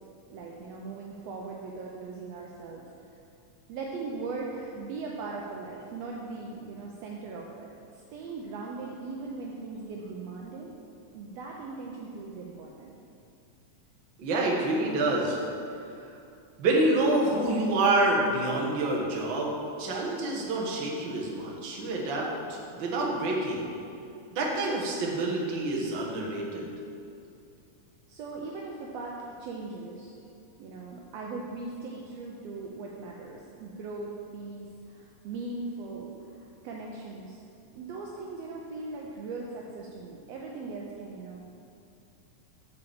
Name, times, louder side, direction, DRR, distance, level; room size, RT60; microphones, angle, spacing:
voice 1, 0.3-3.2 3.7-10.7 11.1-12.9 28.1-30.1 30.6-37.4 37.7-41.5, right 3 dB, 80° right, -2 dB, 1.5 m, -39 dB
voice 2, 14.2-15.6 16.6-23.7 24.3-26.6, right 2 dB, 55° right, -3 dB, 1.3 m, -27 dB
6.8 x 4.6 x 6.9 m, 2.6 s
omnidirectional pair, 3.6 m